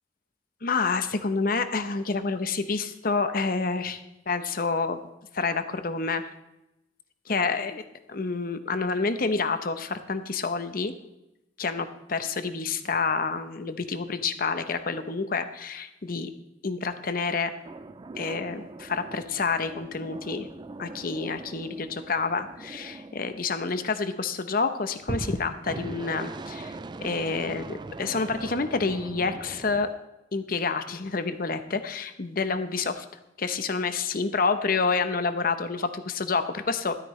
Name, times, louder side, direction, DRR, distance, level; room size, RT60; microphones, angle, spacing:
voice 1, 0.6-5.0 5.3-6.3 7.3-7.8 8.1-10.9 11.6-16.3 16.6-17.5 18.2-20.5 20.8-29.9 30.3-33.1 33.4-37.0, left 4 dB, 50° left, 10 dB, 0.8 m, -28 dB
sound 1, 17.6-24.0 25.0-29.9, right 3 dB, 25° right, 0.3 m, -40 dB
13.0 x 12.5 x 3.2 m, 0.91 s
head